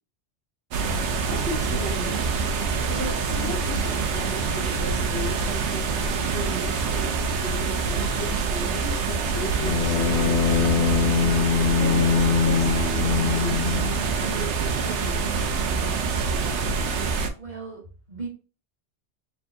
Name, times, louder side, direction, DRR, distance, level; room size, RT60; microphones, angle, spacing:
sound 1, 0.7-17.3, right 5 dB, 90° right, 1.0 m, -26 dB
voice 1, 1.0-2.2 2.9-11.0 11.8-12.7 13.0-13.8 14.2-15.6, equal, 5° left, -4 dB, 1.8 m, -36 dB
Bowed string instrument, 9.6-14.1, left 6 dB, 80° left, 0.9 m, -23 dB
voice 2, 17.4-18.3, right 4 dB, 45° right, -5 dB, 1.2 m, -37 dB
4.3 x 3.4 x 2.6 m, 0.35 s
omnidirectional pair, 1.1 m